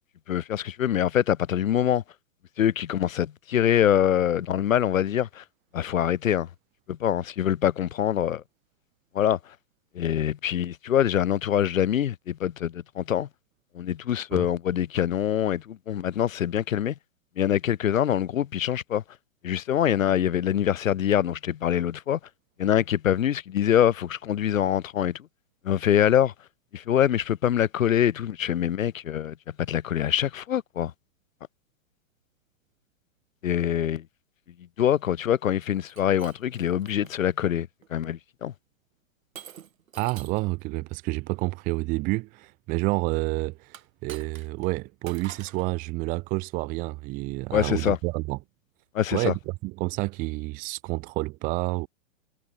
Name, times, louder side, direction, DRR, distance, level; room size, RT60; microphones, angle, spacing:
voice 1, 0.3-2.0 2.6-5.4 5.7-6.5 6.9-8.4 9.1-9.4 9.9-13.3 13.7-16.9 17.4-19.0 19.4-22.2 22.6-25.3 25.6-26.3 26.7-30.9 33.4-34.0 34.8-38.5 47.5-48.0 48.9-49.3, left 10 dB, 75° left, 2.8 m, -24 dB
Shatter, 35.8-37.2 37.8-38.2 39.4-40.5 43.7-44.7 45.1-45.7, right 9 dB, 85° right, 4.6 m, -46 dB
voice 2, 40.0-48.4 49.1-51.9, right 23 dB, 20° right, 1.2 m, -29 dB
hypercardioid pair, 165°, 40 cm